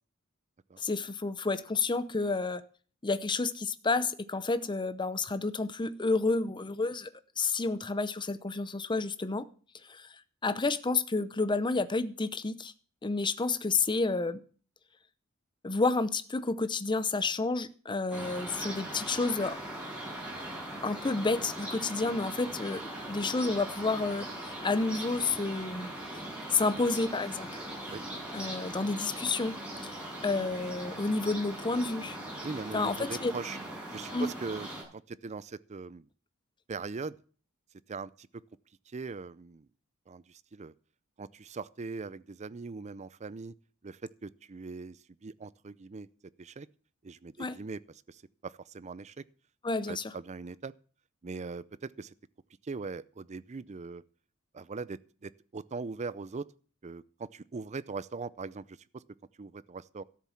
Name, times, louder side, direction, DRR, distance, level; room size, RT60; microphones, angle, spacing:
voice 1, 0.8-2.6 3.0-7.1 7.4-9.5 9.9-10.1 10.4-12.7 13.0-14.4 15.6-19.6 20.8-25.9 26.5-27.6 28.3-29.6 29.8-32.2 32.7-33.3 34.1-34.3 47.4-47.6 49.6-50.1, left 3 dB, 20° left, 0.7 m, -30 dB
sound 1, 18.1-34.8, right 1 dB, 5° right, 7.1 m, -40 dB
voice 2, 32.4-33.6 33.9-36.1 36.7-37.2 37.9-38.3 38.9-39.7 40.1-40.7 41.2-43.5 43.8-46.1 46.4-46.7 47.0-47.8 48.1-49.2 49.9-50.7 51.2-52.1 52.6-54.0 54.5-56.5 56.8-59.0 59.4-60.0, right 4 dB, 35° right, 0.5 m, -40 dB
13.0 x 7.4 x 7.1 m
head